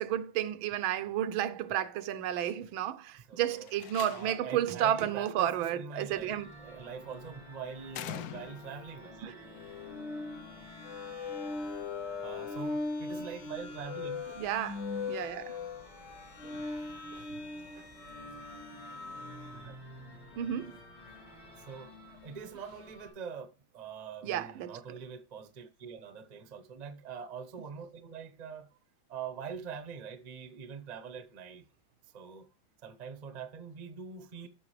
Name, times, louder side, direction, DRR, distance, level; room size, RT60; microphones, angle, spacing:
voice 1, 0.0-6.5 9.2-9.3 14.4-15.6 16.4-16.6 20.4-20.7 24.2-24.8, right 11 dB, 80° right, 1.5 m, -32 dB
voice 2, 3.1-3.7 4.1-9.3 12.2-14.3 19.5-19.8 21.7-28.7 29.1-31.6 32.1-32.5 32.8-34.5, right 6 dB, 35° right, 0.6 m, -44 dB
Slam, 3.6-4.6 6.1-6.5 7.9-8.9, left 11 dB, 75° left, 0.8 m, -43 dB
sound 1, 6.1-23.1, left 1 dB, 90° left, 5.9 m, -52 dB
sound 2, 9.5-19.7, left 3 dB, 60° left, 2.5 m, -40 dB
11.5 x 6.5 x 3.2 m
omnidirectional pair, 2.2 m